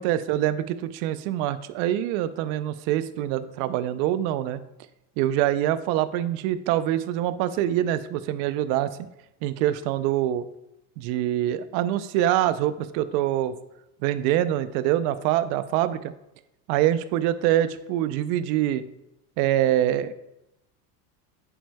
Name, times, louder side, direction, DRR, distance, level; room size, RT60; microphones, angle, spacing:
voice 1, 0.0-4.6 5.2-8.9 9.4-10.5 11.0-13.6 14.0-16.1 16.7-18.9 19.4-20.1, right 12 dB, 70° right, 14 dB, 0.6 m, -25 dB
8.4 x 5.5 x 2.2 m, 0.89 s
supercardioid pair, 105°, 45 cm